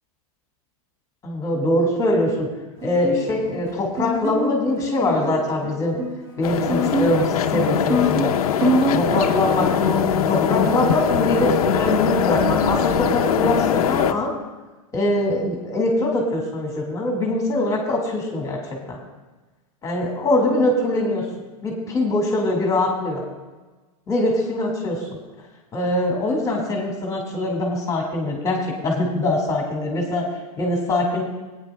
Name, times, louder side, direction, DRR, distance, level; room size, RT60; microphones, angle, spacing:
voice 1, 1.2-2.5 2.8-6.0 6.4-8.3 8.9-9.7 10.3-14.3 14.9-18.6 18.9-19.0 19.8-21.2 21.6-23.2 24.1-25.0 25.7-30.3 30.6-31.2, left 1 dB, 20° left, 0 dB, 1.9 m, -23 dB
Guitar, 2.8-12.8, equal, 25° right, 2.1 m, -26 dB
sound 1, 6.4-14.1, left 9 dB, 80° left, 0.7 m, -22 dB
20.0 x 9.3 x 2.2 m, 1.2 s
supercardioid pair, 140°, 19 cm